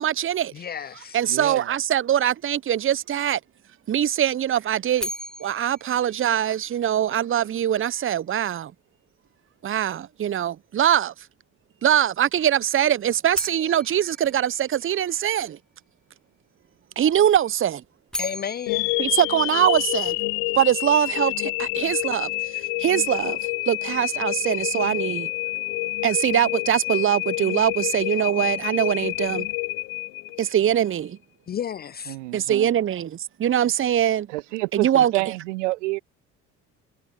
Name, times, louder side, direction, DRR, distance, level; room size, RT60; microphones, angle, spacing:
voice 1, 0.0-0.5 1.1-3.4 3.9-5.1 5.4-8.7 9.6-11.1 11.8-15.6 17.0-17.8 19.0-20.2 20.5-25.3 26.0-29.5 30.4-31.2 32.3-34.3 34.7-35.1, right 10 dB, 35° right, 0.9 m, -22 dB
voice 2, 0.5-1.2 18.2-18.9 31.5-32.2, left 8 dB, 30° left, 0.4 m, -32 dB
voice 3, 1.3-1.7 32.1-32.7 34.3-36.0, right 22 dB, 75° right, 1.7 m, -28 dB
sound 1, 5.0-7.1 13.3-15.5 17.8-20.3, left 1 dB, ahead, 2.2 m, -37 dB
sound 2, 18.7-30.8, left 29 dB, 65° left, 0.7 m, -28 dB
hypercardioid pair, 55°, 36 cm